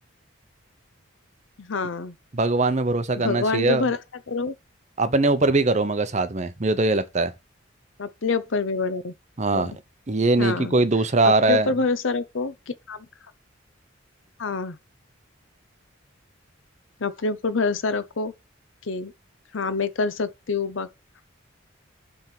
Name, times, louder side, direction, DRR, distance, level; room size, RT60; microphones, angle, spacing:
voice 1, 1.6-2.2 3.2-4.0 4.3-4.5 8.0-9.1 9.5-9.7 10.4-10.7 11.2-13.1 14.4-14.8 17.0-18.3 18.9-19.1 19.5-20.9, left 4 dB, 70° left, 0.7 m, -26 dB
voice 2, 2.3-3.9 5.0-7.3 9.4-9.7 10.1-11.7, right 2 dB, 35° right, 0.7 m, -21 dB
9.0 x 3.5 x 5.9 m
head